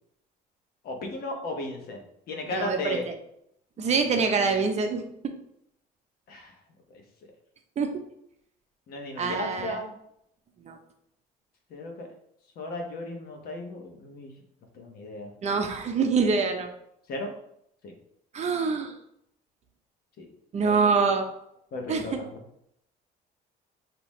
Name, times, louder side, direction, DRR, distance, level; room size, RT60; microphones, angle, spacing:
voice 1, 0.8-3.0 3.8-4.1 6.3-6.5 6.9-7.0 8.9-9.9 11.7-12.1 12.6-14.3 14.7-15.3 17.1-17.3 17.8-17.9 20.2-20.3 20.6-20.7 21.7-22.4, left 2 dB, 65° left, 2 dB, 1.1 m, -35 dB
voice 2, 2.5-3.0 3.8-5.0 7.8-7.9 9.2-9.8 10.7-10.8 15.4-16.7 18.3-18.9 20.5-21.3 21.9-22.2, right 5 dB, 40° right, 5 dB, 0.7 m, -25 dB
5.4 x 2.9 x 3.1 m, 0.75 s
cardioid pair, 110°, 17 cm